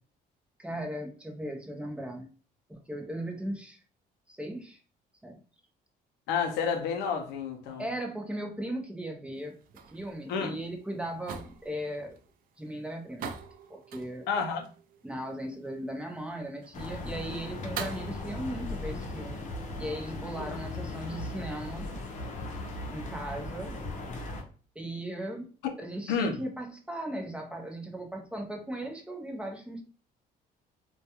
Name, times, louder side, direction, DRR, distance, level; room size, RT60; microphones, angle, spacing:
voice 1, 0.6-2.3 2.7-3.8 4.3-4.8 5.2-5.4 7.8-9.5 9.8-12.2 12.6-13.3 13.7-14.3 15.0-19.5 19.8-21.9 22.9-23.7 24.8-25.5 25.8-29.8, right 1 dB, 5° right, 0.5 m, -37 dB
voice 2, 6.3-7.8 10.3-10.6 14.3-14.6 20.4-20.5 25.6-25.7 26.1-26.4, left 6 dB, 85° left, 0.5 m, -30 dB
sound 1, 9.4-18.1, right 6 dB, 60° right, 0.4 m, -45 dB
sound 2, 16.7-24.4, left 2 dB, 45° left, 0.7 m, -38 dB
2.3 x 2.2 x 2.8 m
cardioid pair, 110°, 17 cm